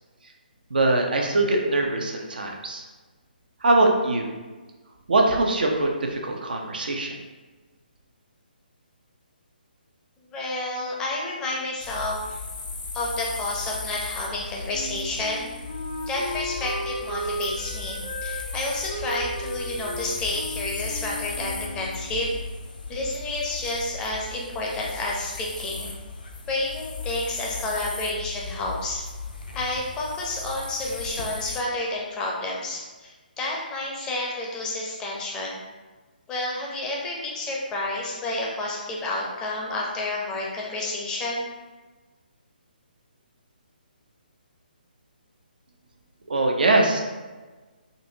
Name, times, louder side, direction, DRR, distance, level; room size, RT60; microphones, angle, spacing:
voice 1, 0.7-2.8 3.6-4.3 5.1-7.2 46.3-47.0, right 2 dB, 65° right, 2 dB, 0.6 m, -22 dB
voice 2, 10.3-12.4 12.9-15.5 16.1-22.3 22.9-25.9 26.5-29.0 29.5-35.6 36.3-41.5, left 2 dB, 15° left, -3 dB, 0.6 m, -30 dB
sound 1, 11.8-31.6, left 3 dB, 60° left, 0.5 m, -36 dB
Wind instrument woodwind instrument, 14.7-22.2, right 1 dB, 25° right, 0.7 m, -35 dB
4.0 x 2.5 x 2.7 m, 1.3 s
figure-of-eight pair, 140°, 5 cm